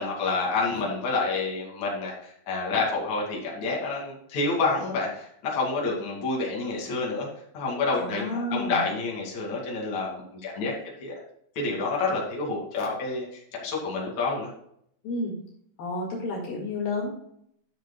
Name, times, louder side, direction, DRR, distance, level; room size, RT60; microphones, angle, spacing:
voice 1, 0.0-7.3 7.5-10.7 11.0-11.1 11.6-13.3 13.6-14.5, left 3 dB, 50° left, -2 dB, 3.7 m, -28 dB
voice 2, 7.9-8.8 15.0-15.3 15.8-17.1, left 2 dB, 70° left, -2 dB, 3.6 m, -31 dB
12.0 x 7.7 x 2.3 m, 0.68 s
omnidirectional pair, 4.4 m